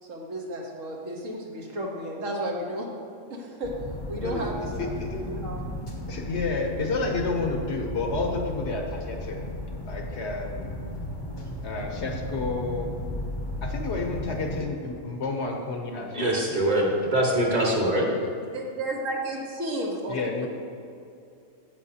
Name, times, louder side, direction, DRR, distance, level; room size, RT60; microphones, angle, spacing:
voice 1, 0.0-2.9 3.3-3.7 4.1-4.9 5.3-5.6 18.5-20.5, right 1 dB, 70° right, -1 dB, 1.5 m, -33 dB
sound 1, 3.6-14.6, left 1 dB, 25° left, 0.7 m, -35 dB
voice 2, 4.8-5.2 6.1-9.5 9.8-10.9 11.6-12.9 13.6-16.4 17.4-17.6 20.1-20.5, left 3 dB, 60° left, 2 dB, 1.1 m, -30 dB
voice 3, 16.1-18.1, right 1 dB, 35° right, -1 dB, 1.3 m, -23 dB
14.5 x 5.3 x 2.8 m, 2.6 s
omnidirectional pair, 1.4 m